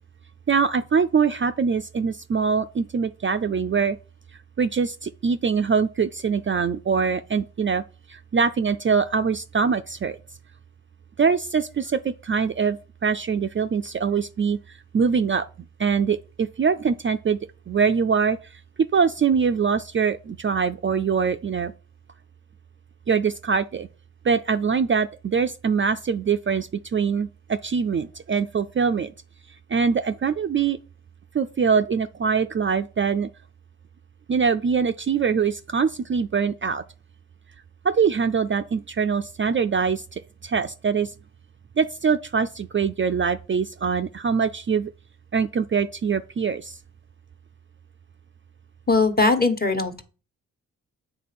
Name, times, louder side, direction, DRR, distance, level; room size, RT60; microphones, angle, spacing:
voice 1, 0.5-4.0 4.6-7.8 8.1-10.2 11.2-14.6 14.9-15.5 15.8-17.4 17.7-18.4 18.9-21.7 23.1-23.9 24.2-29.1 29.7-30.8 31.3-33.3 34.3-36.8 37.8-41.1 41.8-44.9 45.3-46.8, right 6 dB, 35° right, 0.5 m, -23 dB
voice 2, 48.9-50.0, left 3 dB, 25° left, 1.4 m, -20 dB
7.5 x 3.4 x 6.0 m
cardioid pair, 50°, 35 cm